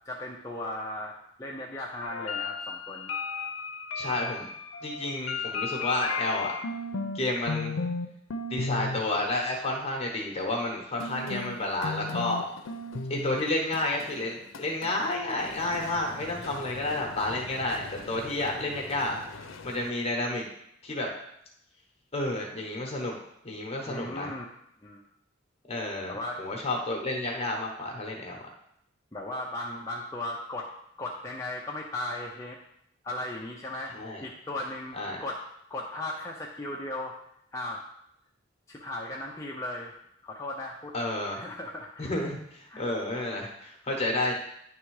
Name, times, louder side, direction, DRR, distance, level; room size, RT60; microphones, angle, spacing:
voice 1, 0.0-3.1 23.9-24.5 24.8-25.0 26.1-26.4 29.1-30.7 31.0-32.6 33.0-34.0 34.2-35.4 35.7-37.1 37.5-37.8 38.7-39.9 40.2-40.9 41.3-42.1 42.7-42.8, left 1 dB, 15° left, -2 dB, 0.6 m, -36 dB
sound 1, 2.0-7.2 7.5-8.1 8.3-9.0 11.0-19.9, left 4 dB, 75° left, 0.6 m, -36 dB
voice 2, 3.9-4.5 4.8-6.6 7.1-7.7 8.5-12.5 13.1-19.2 19.6-20.5 20.8-21.1 22.1-23.2 23.4-24.3 25.7-28.4 34.0-34.2 34.9-35.2 40.9-41.4 42.0-44.3, left 2 dB, 30° left, 0 dB, 1.1 m, -30 dB
10.0 x 3.5 x 4.8 m, 0.75 s
head